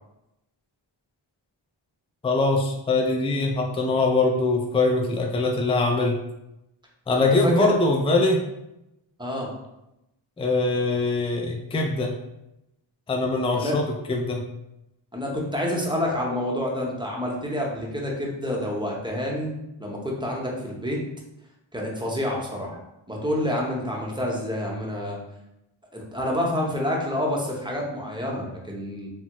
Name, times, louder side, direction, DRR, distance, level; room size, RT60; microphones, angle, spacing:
voice 1, 2.2-6.1 7.1-8.4 10.4-12.1 13.1-14.4, left 3 dB, 15° left, 2 dB, 0.3 m, -22 dB
voice 2, 9.2-9.5 13.5-13.8 15.1-19.5 19.8-21.0 21.7-22.8 23.1-25.2 25.9-29.1, left 1 dB, 10° right, -2 dB, 0.7 m, -28 dB
3.3 x 2.0 x 2.9 m, 0.88 s
wide cardioid pair, 50°, 48 cm